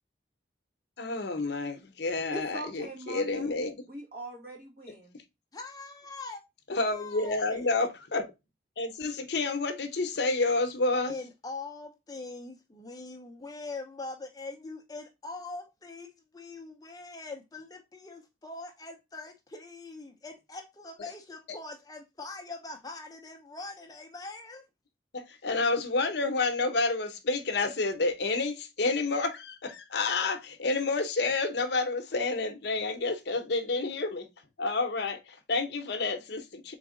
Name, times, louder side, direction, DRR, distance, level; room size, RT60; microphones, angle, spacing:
voice 1, 1.0-3.7 6.7-8.3 8.8-11.2 25.1-34.3 34.6-36.7, left 3 dB, 65° left, 0.7 m, -29 dB
voice 2, 2.3-3.5 3.9-5.1, right 1 dB, 50° right, 1.7 m, -41 dB
voice 3, 5.5-6.4 6.8-7.7 11.1-24.7, left 3 dB, 20° left, 0.5 m, -42 dB
3.9 x 3.5 x 3.7 m
head